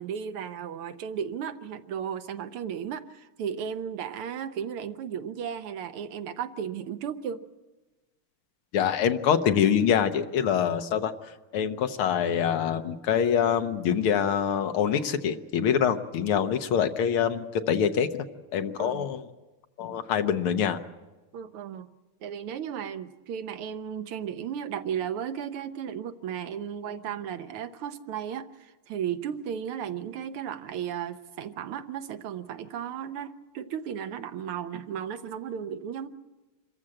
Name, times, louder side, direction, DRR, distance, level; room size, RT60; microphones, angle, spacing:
voice 1, 0.0-7.4 18.8-19.1 21.3-21.9 22.2-36.1, right 8 dB, 90° right, 10 dB, 1.8 m, -35 dB
voice 2, 8.7-18.3 18.5-19.2 19.8-20.8, left 8 dB, 80° left, 8 dB, 1.9 m, -25 dB
26.0 x 14.5 x 8.8 m, 1.2 s
omnidirectional pair, 2.3 m